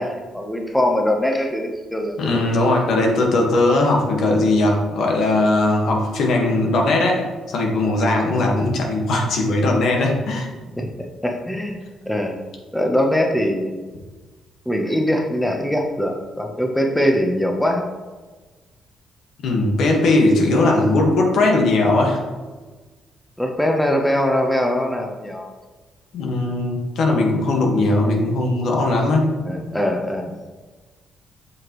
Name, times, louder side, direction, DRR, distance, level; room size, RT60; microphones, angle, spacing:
voice 1, 0.0-2.4 10.8-11.8 12.1-12.4 12.7-13.7 14.7-17.9 20.5-20.8 23.4-25.5 29.4-30.3, equal, 5° left, 2 dB, 0.9 m, -22 dB
voice 2, 2.2-10.5 19.4-22.2 26.1-29.4, left 2 dB, 70° left, 1 dB, 1.5 m, -19 dB
7.8 x 5.8 x 3.1 m, 1.3 s
cardioid pair, 90°, 0 cm